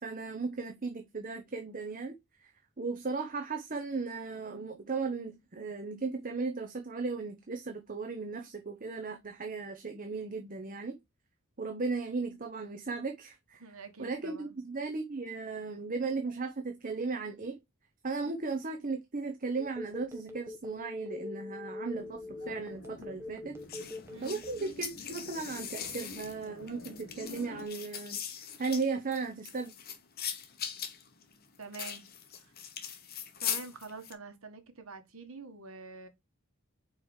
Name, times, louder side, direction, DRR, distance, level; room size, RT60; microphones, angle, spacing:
voice 1, 0.0-2.1 2.4-2.5 2.8-11.0 11.6-13.6 14.0-17.6 18.0-23.6 24.2-29.7, right 4 dB, 40° right, 0.8 m, -36 dB
voice 2, 13.6-14.6 18.2-18.4 24.1-24.4 31.6-32.1 32.4-32.5 33.4-36.1, right 4 dB, 75° right, 1.6 m, -46 dB
Telephone, 19.6-24.8, left 2 dB, 10° right, 1.2 m, -42 dB
sound 1, 21.9-27.7, left 3 dB, 65° left, 1.3 m, -49 dB
sound 2, 23.7-34.1, left 8 dB, 45° left, 1.1 m, -40 dB
4.9 x 4.7 x 4.8 m
head